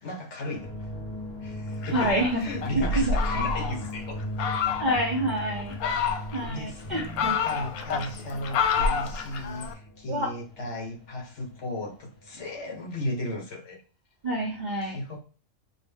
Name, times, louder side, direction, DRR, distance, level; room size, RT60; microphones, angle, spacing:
voice 1, 0.0-0.9 1.4-4.2 6.5-13.8 14.8-15.2, left 1 dB, 55° left, 1.3 m, -36 dB
sound 1, 0.5-12.7 12.9-13.4, equal, 25° left, 0.8 m, -39 dB
Fowl, 1.8-3.9 4.4-5.0 5.6-6.5 7.0-9.7, left 5 dB, 85° left, 1.1 m, -28 dB
voice 2, 1.9-2.5 2.9-3.2 4.8-5.7 6.3-7.4 10.1-10.3 14.2-15.2, right 1 dB, 50° right, 0.5 m, -28 dB
4.7 x 2.1 x 3.5 m
omnidirectional pair, 1.5 m